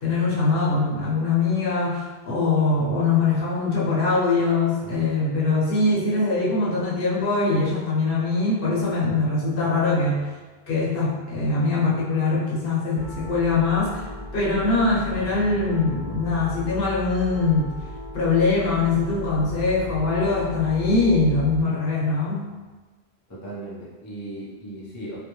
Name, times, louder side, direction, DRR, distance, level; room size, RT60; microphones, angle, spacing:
voice 1, 0.0-10.3 10.7-14.1 14.3-17.7 18.1-22.5, left 3 dB, 65° left, -6 dB, 0.8 m, -22 dB
voice 2, 4.8-5.1 23.3-25.2, right 1 dB, 25° left, -7 dB, 0.4 m, -37 dB
Piano, 13.0-21.6, left 1 dB, 40° right, 0.9 m, -36 dB
2.3 x 2.1 x 2.9 m, 1.3 s
omnidirectional pair, 1.1 m